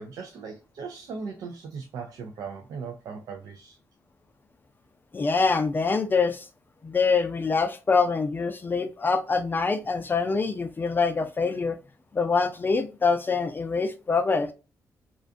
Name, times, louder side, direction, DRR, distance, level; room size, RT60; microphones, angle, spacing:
voice 1, 0.0-3.8, right 5 dB, 80° right, 0.4 m, -38 dB
voice 2, 5.1-6.5 6.8-11.8 12.1-14.5, left 4 dB, 30° left, 0.4 m, -25 dB
2.4 x 2.2 x 2.4 m
cardioid pair, 85°, 6 cm